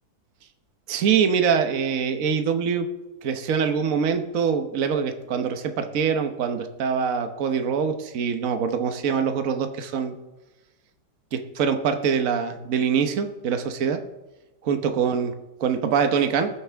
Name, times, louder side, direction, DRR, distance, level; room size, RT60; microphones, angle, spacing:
voice 1, 0.9-2.9 3.2-10.2 11.3-14.0 14.6-15.3 15.6-16.5, right 6 dB, 50° right, 7 dB, 1.3 m, -24 dB
20.0 x 7.9 x 3.5 m, 1.1 s
omnidirectional pair, 2.0 m